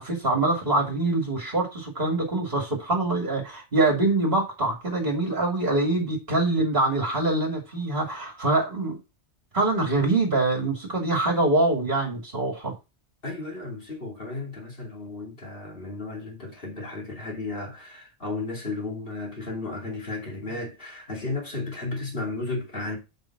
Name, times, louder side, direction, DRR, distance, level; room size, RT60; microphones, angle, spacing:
voice 1, 0.0-9.0 9.5-12.7, right 2 dB, 45° right, 2.5 m, -24 dB
voice 2, 13.2-23.0, left 3 dB, 50° left, 2.8 m, -34 dB
7.1 x 5.4 x 5.9 m
omnidirectional pair, 1.2 m